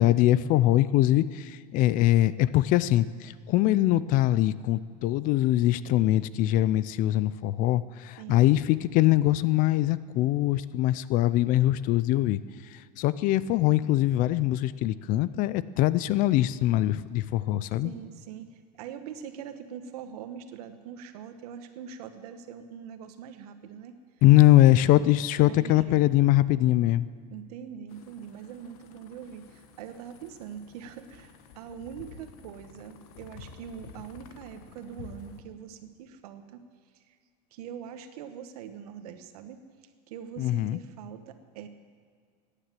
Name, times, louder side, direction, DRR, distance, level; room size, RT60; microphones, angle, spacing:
voice 1, 0.0-12.4 12.7-17.9 24.2-27.1 40.4-40.8, left 15 dB, 45° left, 17 dB, 0.5 m, -22 dB
voice 2, 17.8-23.9 24.5-24.7 25.4-26.2 27.3-36.6 36.9-37.1 37.5-39.6 40.1-41.7, right 8 dB, 85° right, 9 dB, 1.3 m, -43 dB
sound 1, 27.9-35.4, left 6 dB, 70° left, 1.3 m, -50 dB
15.5 x 9.9 x 7.5 m, 2.1 s
supercardioid pair, 145°, 19 cm